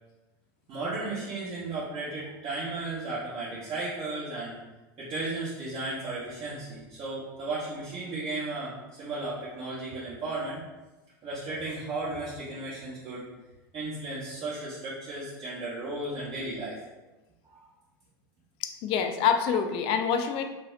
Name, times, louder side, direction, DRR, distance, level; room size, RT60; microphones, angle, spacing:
voice 1, 0.7-4.6 5.0-10.6 11.2-13.3 13.7-16.7 17.5-17.6, right 2 dB, 40° right, -9 dB, 1.0 m, -35 dB
voice 2, 18.6-20.4, left 7 dB, 50° left, 7 dB, 0.4 m, -26 dB
5.1 x 2.0 x 2.5 m, 1.1 s
hypercardioid pair, 90°, 12 cm